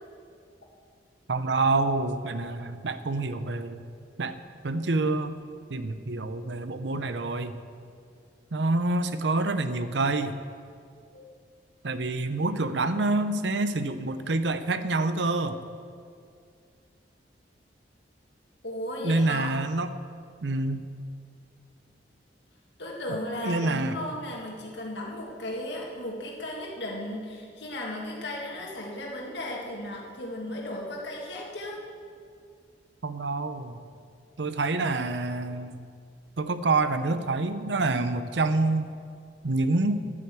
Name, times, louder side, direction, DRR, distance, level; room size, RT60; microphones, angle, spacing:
voice 1, 1.3-3.8 4.2-5.3 5.7-7.5 8.5-10.4 11.8-15.6 19.0-19.9 20.4-20.9 23.4-24.0 33.0-33.8 34.4-35.8 36.4-38.9 39.4-40.0, right 2 dB, 90° right, 11 dB, 0.7 m, -27 dB
voice 2, 18.6-19.5 22.8-31.8, left 1 dB, 80° left, -2 dB, 1.9 m, -35 dB
9.9 x 9.4 x 7.6 m, 2.2 s
head